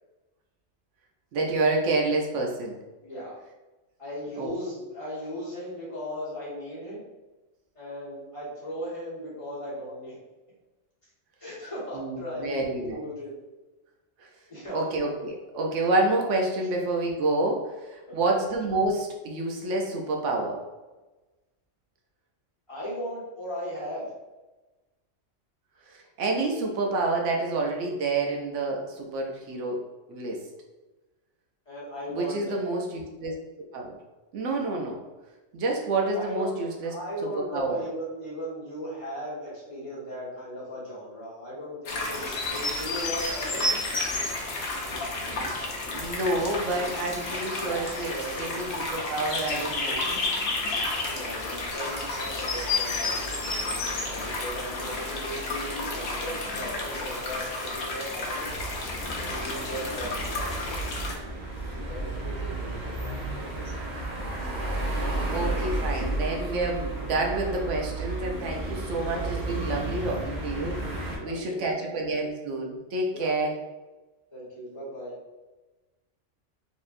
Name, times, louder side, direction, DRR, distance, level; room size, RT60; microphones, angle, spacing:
voice 1, 1.3-2.8 4.4-4.5 11.9-13.0 14.7-20.6 25.9-29.8 30.1-30.4 32.1-33.3 33.7-34.0 34.3-35.0 35.5-36.9 37.3-37.8 44.9-50.1 65.3-70.8 71.2-73.6, right 2 dB, 75° right, 1 dB, 1.0 m, -28 dB
voice 2, 3.0-3.3 4.0-7.0 7.7-10.2 11.4-13.3 14.5-14.8 16.6-16.7 18.0-18.4 22.7-24.1 31.6-32.6 36.1-43.7 47.5-48.3 51.0-58.5 59.2-61.3 61.8-64.0 71.1-71.9 73.1-73.3 74.3-75.1, equal, 25° left, -9 dB, 1.7 m, -37 dB
sound 1, 41.9-61.2, left 2 dB, 60° left, 0.9 m, -31 dB
sound 2, 58.4-71.2, right 2 dB, 40° right, 0.9 m, -32 dB
4.2 x 3.0 x 2.5 m, 1.1 s
omnidirectional pair, 1.3 m